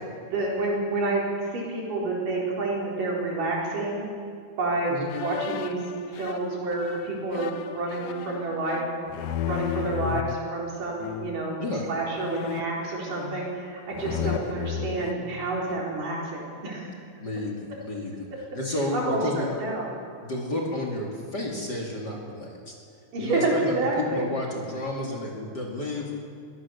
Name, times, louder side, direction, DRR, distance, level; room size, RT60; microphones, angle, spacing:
voice 1, 0.3-1.2 1.5-4.0 4.6-5.8 6.1-8.8 9.4-11.6 11.9-16.9 17.7-17.8 18.9-19.9 23.1-24.3, right 2 dB, 85° right, -3 dB, 5.8 m, -29 dB
sound 1, 5.1-10.4 11.0-11.5 12.2-13.6 13.9-15.9, left 10 dB, 75° left, 1.6 m, -34 dB
voice 2, 11.6-11.9 14.0-14.3 17.2-18.3 18.5-19.5 20.2-22.7 23.2-26.1, left 1 dB, 35° left, -1 dB, 2.8 m, -31 dB
23.0 x 17.0 x 7.1 m, 2.3 s
omnidirectional pair, 3.7 m